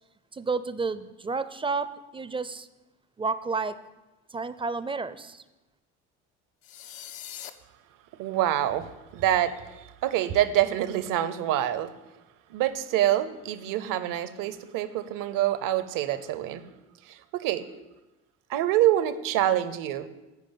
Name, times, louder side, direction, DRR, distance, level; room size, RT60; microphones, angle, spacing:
voice 1, 0.3-2.7 3.2-3.8 4.3-5.4, right 4 dB, 15° right, 14 dB, 0.4 m, -31 dB
sound 1, 6.6-7.5, left 11 dB, 90° left, 0.7 m, -41 dB
voice 2, 8.2-11.9 12.5-16.6 17.1-17.6 18.5-20.1, right 12 dB, 70° right, 13 dB, 0.8 m, -26 dB
9.3 x 5.1 x 7.3 m, 1.1 s
supercardioid pair, 85°, 34 cm